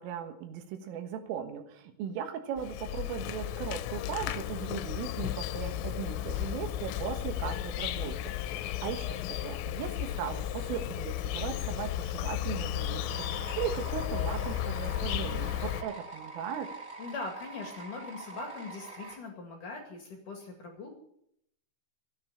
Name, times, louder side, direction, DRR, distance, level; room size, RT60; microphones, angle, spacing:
voice 1, 0.0-16.7, right 8 dB, 80° right, 7 dB, 3.9 m, -38 dB
Insect, 2.6-15.8, left 12 dB, 80° left, 3.3 m, -34 dB
sound 1, 13.1-19.2, right 3 dB, 15° right, 2.8 m, -45 dB
voice 2, 17.0-21.0, left 3 dB, 50° left, 2 dB, 2.9 m, -41 dB
14.5 x 9.8 x 8.6 m, 0.71 s
omnidirectional pair, 5.9 m